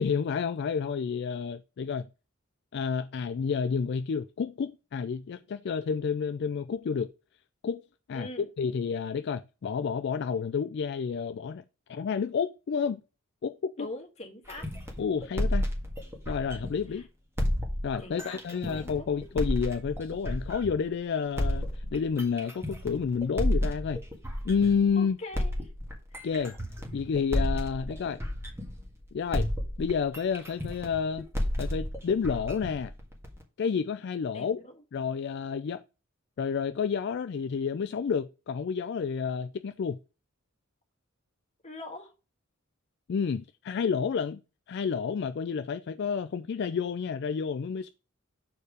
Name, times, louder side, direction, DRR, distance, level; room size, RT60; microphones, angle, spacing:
voice 1, 0.0-2.1 2.7-7.1 7.6-7.8 8.1-8.3 8.6-11.6 11.9-13.0 13.4-13.9 15.0-15.7 16.3-17.0 17.8-24.0 24.4-25.2 26.2-26.6 26.9-28.2 29.1-29.5 29.8-31.3 31.6-32.9 33.6-34.6 34.9-35.8 36.4-40.0 43.1-44.4 44.7-47.9, left 6 dB, 55° left, 0.3 m, -30 dB
voice 2, 8.1-8.5 13.8-14.7 16.9-17.1 18.0-19.1 25.0-25.5 26.1-26.3 34.3-34.8 41.6-42.1, left 1 dB, 35° left, 1.7 m, -43 dB
sound 1, 14.5-16.9 17.4-20.9 21.4-24.9 25.3-29.0 29.3-33.4, equal, 10° right, 1.7 m, -32 dB
6.7 x 4.6 x 4.9 m
head